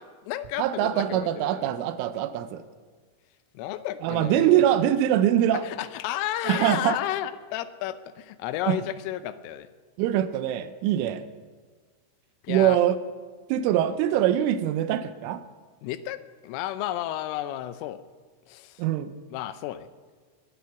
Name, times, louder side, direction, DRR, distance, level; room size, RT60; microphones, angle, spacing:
voice 1, 0.0-1.7 3.5-4.6 5.6-9.7 12.4-12.8 15.8-18.0 18.5-18.8 19.3-19.9, left 13 dB, 85° left, 13 dB, 3.2 m, -32 dB
voice 2, 0.6-2.6 4.0-5.6 6.5-7.0 8.7-8.8 10.0-11.2 12.5-13.0 13.5-15.4 18.8-19.1, right 11 dB, 85° right, 12 dB, 3.2 m, -23 dB
20.5 x 9.7 x 7.0 m, 1.5 s
omnidirectional pair, 5.7 m